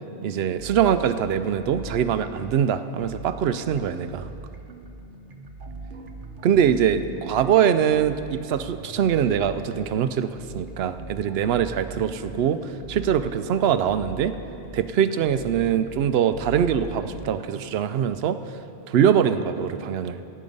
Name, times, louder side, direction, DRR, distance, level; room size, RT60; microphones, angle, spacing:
voice 1, 0.2-4.3 6.4-12.6 12.9-14.3 14.7-18.4 18.9-20.2, right 8 dB, 75° right, 12 dB, 0.8 m, -23 dB
sound 1, 0.6-17.7, right 3 dB, 55° right, 1.1 m, -41 dB
16.0 x 8.7 x 5.4 m, 2.8 s
omnidirectional pair, 1.1 m